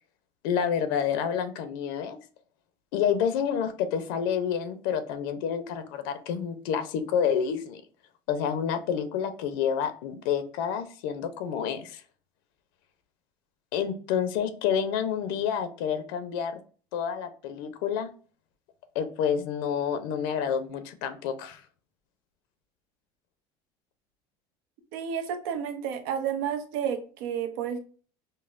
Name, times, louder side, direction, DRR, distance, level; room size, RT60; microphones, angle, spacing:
voice 1, 0.4-2.2 2.9-7.8 8.3-12.0 13.7-16.6 16.9-18.1 18.9-21.6, left 8 dB, 90° left, 10 dB, 0.7 m, -29 dB
voice 2, 24.9-27.8, right 8 dB, 85° right, 7 dB, 0.7 m, -31 dB
5.3 x 2.1 x 2.5 m, 0.40 s
cardioid pair, 155°, 11 cm